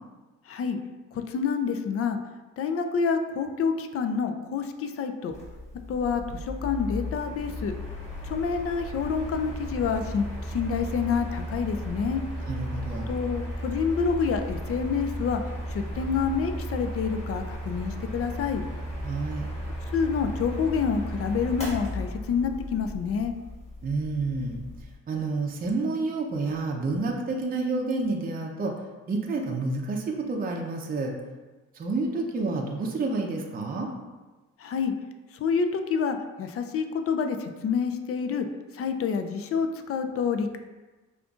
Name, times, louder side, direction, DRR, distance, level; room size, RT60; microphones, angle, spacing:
voice 1, 1.3-2.2 2.6-5.3 5.9-7.7 8.3-12.2 13.1-15.4 15.7-18.6 19.9-23.3 34.6-34.9 35.4-38.5 38.8-40.6, left 6 dB, 50° left, 7 dB, 0.4 m, -28 dB
Mechanical fan, 5.3-24.9, equal, 20° left, 1.4 m, -35 dB
voice 2, 12.4-13.2 19.0-19.5 23.8-24.6 25.1-28.7 29.1-31.1 31.7-33.9, right 3 dB, 30° right, 0 dB, 0.5 m, -29 dB
5.1 x 2.5 x 2.4 m, 1.2 s
cardioid pair, 90°, 30 cm